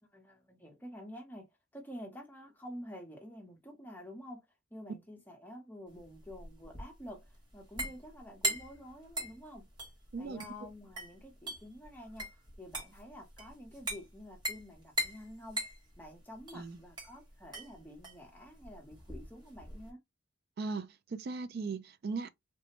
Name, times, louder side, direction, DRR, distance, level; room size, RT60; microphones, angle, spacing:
voice 1, 0.0-4.5 4.7-9.7 10.2-12.3 12.6-15.7 16.0-20.0, equal, 10° left, 0.7 m, -49 dB
sound 1, 5.9-19.9, right 1 dB, 20° right, 0.8 m, -41 dB
voice 2, 10.1-10.4 16.5-16.8 20.6-22.3, right 4 dB, 50° right, 0.3 m, -38 dB
3.2 x 2.0 x 2.8 m
head